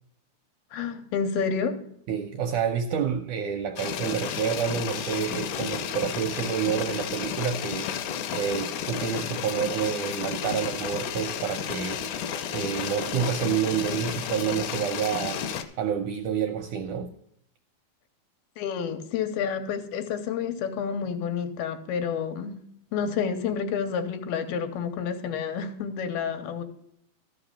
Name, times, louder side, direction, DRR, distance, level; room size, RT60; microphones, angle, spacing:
voice 1, 0.7-1.8 18.6-22.6 22.9-26.6, left 6 dB, 90° left, 7 dB, 2.8 m, -29 dB
voice 2, 2.1-7.9 8.3-12.2 12.5-15.4 15.8-17.1, right 8 dB, 80° right, 5 dB, 1.8 m, -28 dB
sound 1, 3.8-15.6, left 8 dB, 75° left, 2.0 m, -32 dB
13.5 x 5.8 x 5.6 m, 0.73 s
omnidirectional pair, 4.3 m